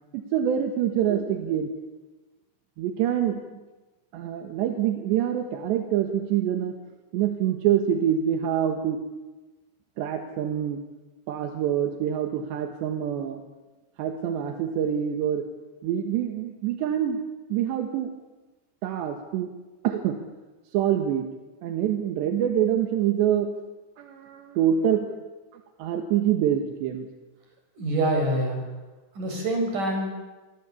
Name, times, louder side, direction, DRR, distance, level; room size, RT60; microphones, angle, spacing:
voice 1, 0.1-1.7 2.8-3.4 4.1-6.8 7.1-9.0 10.0-10.8 11.3-13.4 14.0-15.5 15.8-17.2 17.5-18.1 18.8-19.5 19.8-20.2 20.7-21.3 21.6-23.5 24.0-25.1 25.5-27.1, right 9 dB, 80° right, 5 dB, 3.7 m, -25 dB
voice 2, 27.8-28.6 29.1-30.1, right 1 dB, 45° right, 3 dB, 8.0 m, -25 dB
27.0 x 25.0 x 8.5 m, 1.2 s
omnidirectional pair, 5.0 m